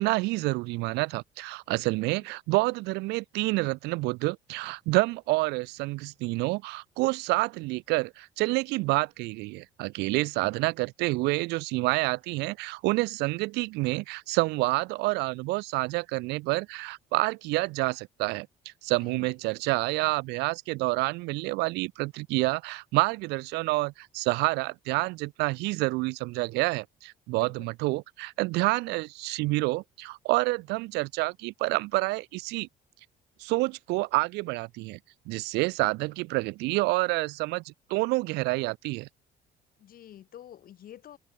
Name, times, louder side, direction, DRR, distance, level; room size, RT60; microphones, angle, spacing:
voice 1, 0.0-18.5 18.8-32.7 33.4-35.0 35.3-39.1, right 23 dB, 90° right, 0.5 m, -28 dB
voice 2, 19.0-19.3 27.3-27.7 39.8-41.2, left 11 dB, 60° left, 5.2 m, -48 dB
open air
cardioid pair, 110°, 17 cm